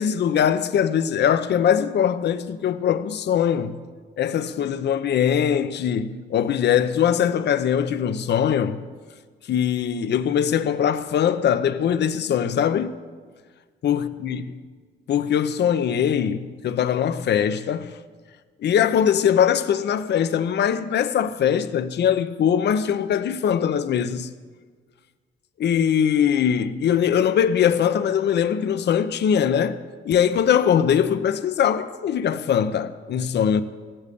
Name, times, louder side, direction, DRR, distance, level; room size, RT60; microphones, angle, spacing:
voice 1, 0.0-3.8 4.2-8.8 9.5-12.9 13.8-14.5 15.1-17.9 18.6-24.3 25.6-33.6, left 8 dB, 60° left, 0.8 m, -21 dB
14.5 x 8.8 x 8.5 m
cardioid pair, 90°, 20 cm